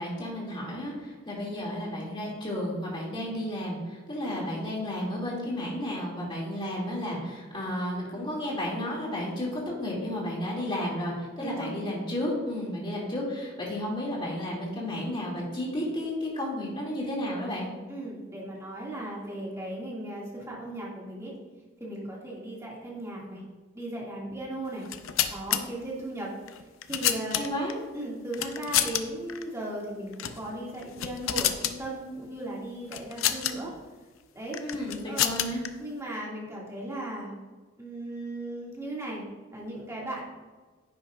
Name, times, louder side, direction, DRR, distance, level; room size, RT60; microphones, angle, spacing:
voice 1, 0.0-17.7 27.3-27.8 34.6-35.6, left 1 dB, 25° left, -4 dB, 2.7 m, -32 dB
voice 2, 4.2-4.6 11.4-11.7 17.9-21.3 21.8-23.4 23.7-24.9 25.3-26.3 26.9-27.4 27.9-33.7 34.3-34.6 35.1-35.4 35.8-37.3 37.8-39.2 39.5-40.2, right 1 dB, 15° right, -5 dB, 2.4 m, -37 dB
sound 1, 24.8-25.6 26.5-27.7 28.3-29.0 29.3-29.4 30.1-30.4 30.8-31.8 32.9-33.5 34.5-35.7, left 11 dB, 85° left, 0.6 m, -28 dB
10.0 x 8.8 x 2.6 m, 1.3 s
head